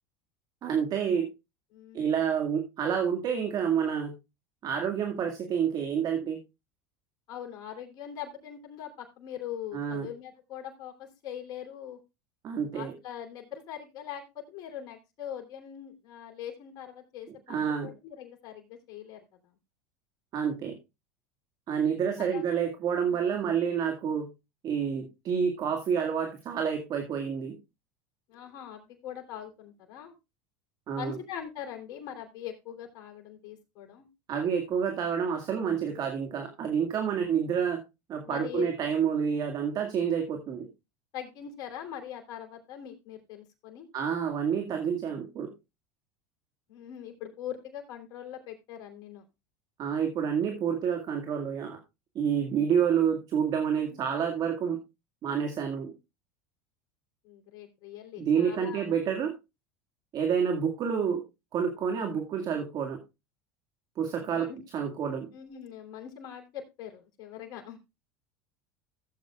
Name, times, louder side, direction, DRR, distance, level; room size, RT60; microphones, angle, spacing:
voice 1, 0.6-1.3 1.9-4.1 4.6-6.4 9.7-10.1 12.4-12.9 17.5-17.9 20.3-20.8 21.7-24.3 24.6-27.6 30.9-31.2 34.3-37.8 38.1-40.7 43.9-45.5 49.8-51.8 52.2-54.8 55.2-55.9 58.2-59.3 60.1-61.2 61.5-63.0 64.0-65.3, right 7 dB, 45° right, 4 dB, 2.0 m, -28 dB
voice 2, 1.7-2.1 7.3-12.0 12.7-19.2 22.2-22.4 23.0-23.2 28.3-30.1 30.9-34.1 38.2-38.6 41.1-43.9 46.7-49.2 53.9-54.1 57.2-58.8 64.3-64.6 65.3-67.8, left 10 dB, 50° left, 2 dB, 3.3 m, -42 dB
15.5 x 7.9 x 2.4 m, 0.25 s
supercardioid pair, 105°, 9 cm